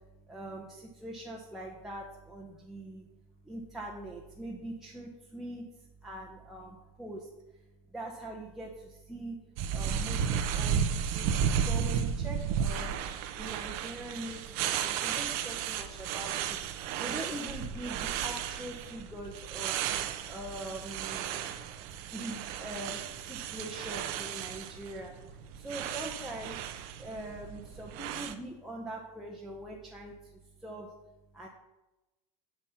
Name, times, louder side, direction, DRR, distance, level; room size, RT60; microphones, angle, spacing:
voice 1, 0.3-3.0 3.4-5.7 6.0-7.3 7.9-9.4 9.7-13.0 13.4-16.6 17.0-19.7 20.3-21.4 22.1-26.6 27.0-30.1 30.6-30.9 31.3-31.5, right 1 dB, ahead, -3 dB, 1.2 m, -42 dB
sound 1, 9.6-28.3, right 8 dB, 55° right, 0.8 m, -34 dB
7.3 x 6.1 x 5.9 m, 1.0 s
supercardioid pair, 120°, 18 cm